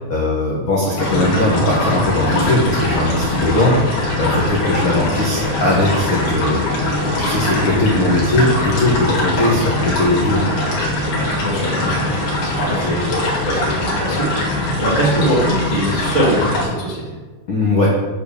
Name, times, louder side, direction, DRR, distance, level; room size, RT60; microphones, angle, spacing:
voice 1, 0.1-10.5 17.5-17.9, left 2 dB, 75° left, -5 dB, 1.1 m, -19 dB
sound 1, 1.0-16.7, left 1 dB, 60° left, 3.2 m, -21 dB
voice 2, 11.4-17.1, right 1 dB, 40° right, -7 dB, 0.6 m, -22 dB
6.9 x 4.7 x 6.9 m, 1.3 s
omnidirectional pair, 4.5 m